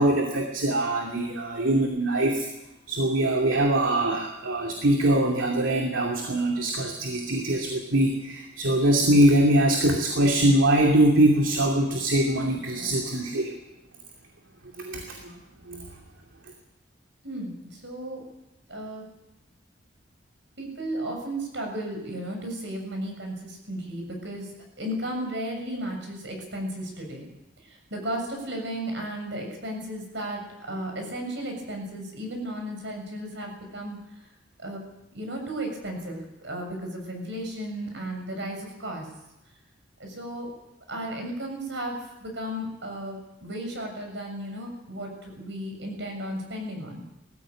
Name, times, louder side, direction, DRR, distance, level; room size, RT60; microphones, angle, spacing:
voice 1, 0.0-2.5 2.9-13.5 14.8-15.3 15.7-15.9, right 1 dB, 90° right, 1 dB, 2.6 m, -23 dB
voice 2, 17.2-18.2 18.7-19.0 20.6-24.5 24.8-27.3 27.6-34.2 34.6-34.8 35.1-39.1 40.0-40.5 40.9-47.0, right 1 dB, 65° right, 2 dB, 7.0 m, -34 dB
20.0 x 15.0 x 8.9 m, 0.94 s
head